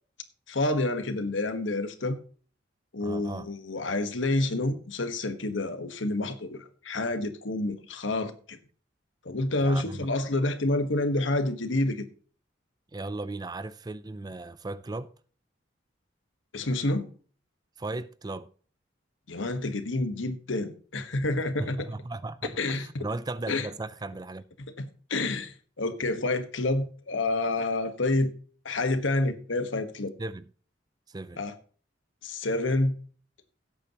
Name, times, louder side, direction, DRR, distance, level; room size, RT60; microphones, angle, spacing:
voice 1, 0.5-2.2 2.9-8.6 9.2-12.0 16.5-17.1 19.3-21.9 22.6-23.1 23.5-23.7 24.8-28.3 28.6-30.1 31.4-31.5 32.2-32.9, left 2 dB, 85° left, 1.3 m, -28 dB
voice 2, 3.0-3.5 9.6-10.1 12.9-15.1 17.8-18.5 21.6-24.4 30.2-30.5 31.1-31.4, right 2 dB, 20° right, 0.4 m, -36 dB
16.5 x 8.4 x 2.9 m
head